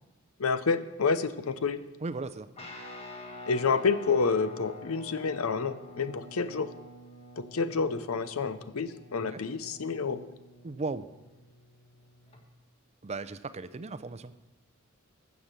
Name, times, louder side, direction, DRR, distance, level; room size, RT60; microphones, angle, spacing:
voice 1, 0.4-1.8 3.5-6.7 7.4-10.3, left 5 dB, 80° left, 13 dB, 0.7 m, -29 dB
voice 2, 2.0-2.5 9.3-9.4 10.6-11.1 13.0-14.3, right 3 dB, 30° right, 13 dB, 0.5 m, -36 dB
Guitar, 2.6-12.4, left 2 dB, 30° left, 1.4 m, -48 dB
13.0 x 7.1 x 6.6 m, 1.1 s
head